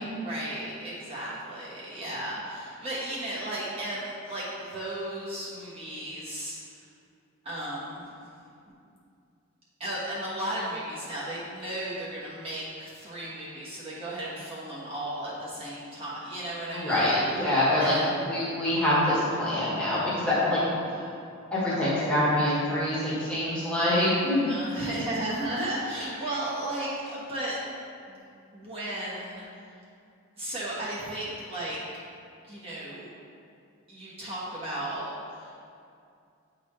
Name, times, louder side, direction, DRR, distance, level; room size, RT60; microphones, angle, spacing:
voice 1, 0.0-6.6 7.4-8.1 9.8-17.1 17.8-18.1 24.5-27.6 28.1-28.3 28.5-29.4 30.4-31.8 32.4-33.1 33.9-35.7, right 1 dB, 25° right, -9 dB, 1.2 m, -35 dB
voice 2, 16.7-20.6 20.9-21.0 21.5-24.6, left 1 dB, 5° left, -9 dB, 1.3 m, -25 dB
9.2 x 3.9 x 3.2 m, 2.5 s
head